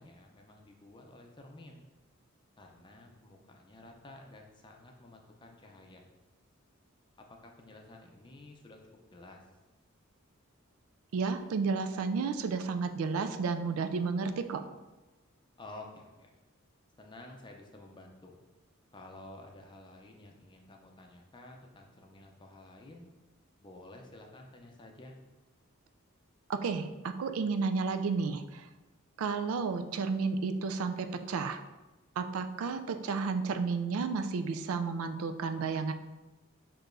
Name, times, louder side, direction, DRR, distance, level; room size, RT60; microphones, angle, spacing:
voice 1, 0.0-1.8 2.6-6.0 7.4-9.4 15.6-16.3 17.0-18.4 18.9-23.1 23.6-25.2, left 2 dB, 20° left, 2 dB, 0.5 m, -52 dB
voice 2, 11.1-14.6 26.5-28.7 29.2-31.6 32.2-35.9, right 4 dB, 90° right, 8 dB, 0.4 m, -32 dB
6.5 x 3.0 x 2.5 m, 1.1 s
head